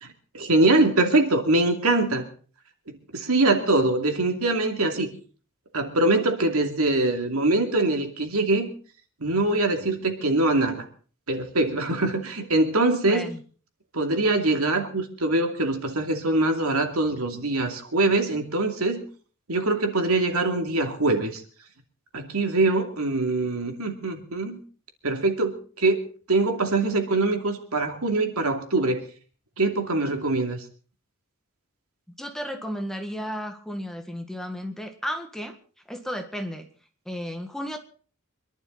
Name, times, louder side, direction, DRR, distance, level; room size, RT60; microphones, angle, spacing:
voice 1, 0.0-2.3 2.9-5.1 5.7-8.7 9.2-10.9 11.3-13.3 13.9-19.0 19.5-21.4 22.1-24.6 25.0-26.0 26.3-29.0 29.6-30.6, right 2 dB, 90° right, 5 dB, 2.6 m, -23 dB
voice 2, 13.1-13.4 32.2-35.6 35.9-36.7 37.1-37.8, equal, ahead, 4 dB, 1.7 m, -33 dB
25.5 x 11.5 x 4.0 m, 0.41 s
head